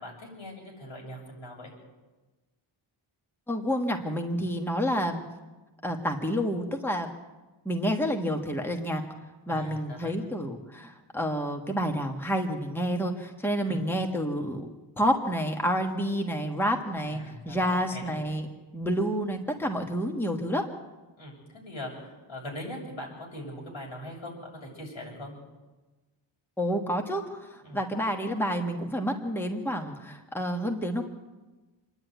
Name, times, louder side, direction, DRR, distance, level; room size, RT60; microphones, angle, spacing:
voice 1, 0.0-1.7 9.5-10.2 13.7-13.9 17.1-18.2 21.2-24.4 24.6-25.3 27.6-27.8, left 1 dB, 75° left, -1 dB, 7.0 m, -41 dB
voice 2, 3.5-5.2 5.8-7.1 7.6-9.0 9.5-18.5 18.7-20.7 26.6-31.0, equal, 5° left, 3 dB, 1.3 m, -29 dB
26.5 x 10.5 x 9.2 m, 1.2 s
wide cardioid pair, 175°, 48 cm